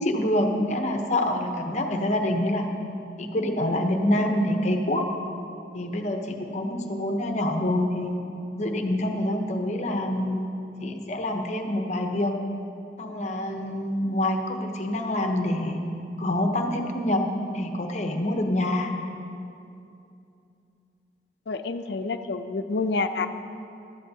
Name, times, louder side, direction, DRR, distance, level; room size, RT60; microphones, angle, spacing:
voice 1, 0.0-2.7 3.2-5.0 5.7-8.2 8.6-10.5 10.8-12.4 13.0-15.8 16.2-18.9, left 1 dB, 40° left, 3 dB, 0.8 m, -26 dB
voice 2, 21.5-23.3, left 3 dB, 75° left, 8 dB, 0.5 m, -28 dB
16.0 x 12.5 x 2.8 m, 2.7 s
head